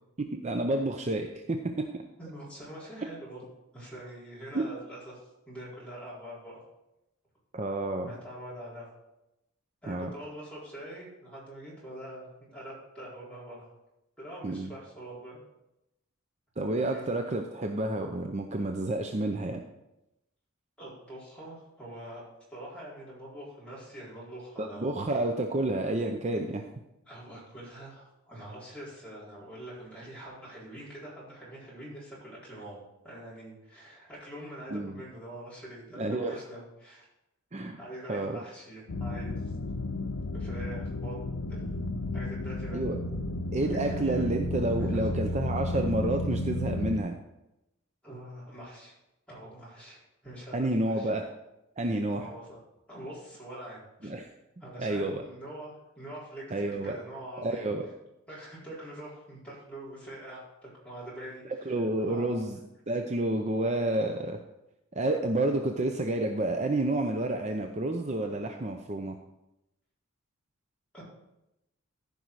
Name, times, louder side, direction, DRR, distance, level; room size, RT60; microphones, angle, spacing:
voice 1, 0.3-1.9 4.5-4.6 7.5-8.1 9.9-10.1 14.4-14.7 16.6-19.6 24.6-26.6 34.7-35.0 36.0-36.4 37.5-37.8 38.1-38.4 42.7-43.0 43.5-47.2 50.5-51.3 51.8-52.3 54.0-54.3 54.8-55.2 56.5-57.0 57.4-57.9 61.7-62.6 62.9-64.4 64.9-69.2, right 2 dB, 35° right, 4 dB, 0.6 m, -29 dB
voice 2, 2.2-3.4 3.7-6.6 8.1-8.9 9.8-13.7 14.2-15.4 16.8-17.1 20.8-22.2 22.5-25.0 27.1-37.0 37.8-39.5 40.3-41.2 41.5-41.9 42.1-43.1 43.6-44.3 44.8-45.1 48.0-48.9 49.3-51.1 52.2-52.6 52.9-54.1 54.6-57.7 58.3-62.5 70.9-71.0, right 1 dB, 5° left, -8 dB, 4.3 m, -44 dB
sound 1, 38.9-47.0, left 1 dB, 90° left, 0.7 m, -32 dB
14.0 x 5.4 x 4.7 m, 0.90 s
head